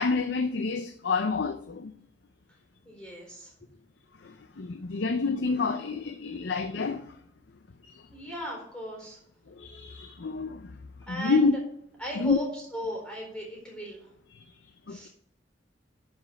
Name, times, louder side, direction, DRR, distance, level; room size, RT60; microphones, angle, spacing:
voice 1, 0.0-1.9 4.2-7.2 7.8-8.1 9.5-10.7 11.1-11.5 12.2-12.4 14.3-14.5 14.9-15.1, left 4 dB, 65° left, 0.6 m, -28 dB
voice 2, 2.8-3.5 8.1-9.2 11.1-11.5 12.0-14.1 14.9-15.1, equal, 5° left, 4.1 m, -37 dB
11.0 x 5.2 x 5.3 m
head